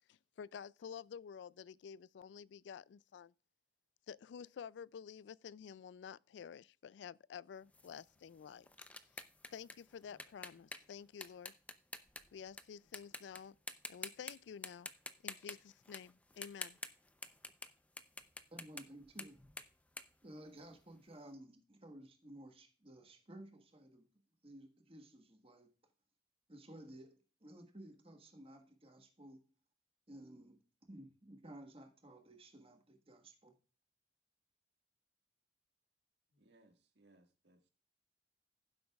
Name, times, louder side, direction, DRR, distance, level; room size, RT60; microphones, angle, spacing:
voice 1, 0.1-3.3 4.1-8.7 9.5-11.5 12.3-13.6 13.9-14.9 15.2-16.8, left 7 dB, 85° left, 0.3 m, -51 dB
sound 1, 7.7-12.6 12.9-13.4 13.7-14.3 14.6-17.7 18.0-21.0, left 2 dB, 10° left, 0.6 m, -48 dB
voice 2, 18.5-19.4 20.2-24.1 24.4-25.7 26.5-29.4 30.1-30.6 30.9-33.6, right 1 dB, 30° right, 1.5 m, -55 dB
voice 3, 36.3-37.7, right 2 dB, 75° right, 1.7 m, -68 dB
15.5 x 7.8 x 2.3 m
head